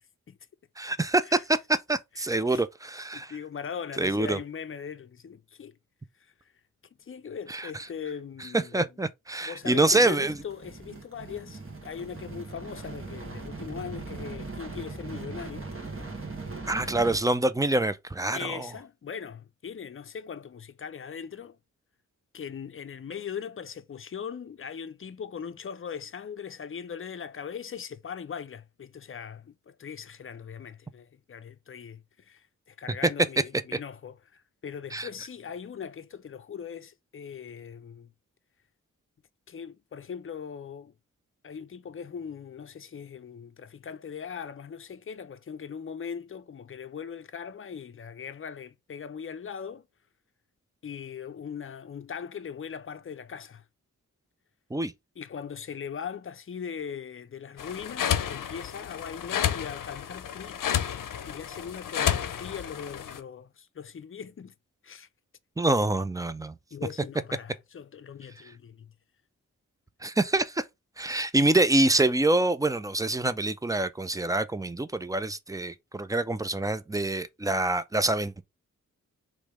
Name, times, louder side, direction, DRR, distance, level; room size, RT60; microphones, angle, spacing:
voice 1, 0.8-3.3 4.0-4.4 7.5-7.7 8.7-10.3 16.7-18.7 34.9-35.1 54.7-54.9 65.6-66.5 70.0-70.6 71.0-78.4, right 2 dB, 10° right, 0.4 m, -26 dB
voice 2, 2.1-2.6 3.1-5.8 6.1-6.5 7.0-9.0 9.4-15.7 18.3-21.6 22.3-38.1 39.5-40.9 41.4-49.9 50.8-53.7 55.2-60.9 61.3-64.5 64.8-65.1 66.7-68.9, left 7 dB, 40° left, 0.5 m, -40 dB
sound 1, 9.6-17.2, right 3 dB, 45° right, 1.6 m, -40 dB
sound 2, 57.6-63.2, left 9 dB, 85° left, 0.6 m, -31 dB
3.3 x 3.1 x 4.8 m
wide cardioid pair, 90°, 31 cm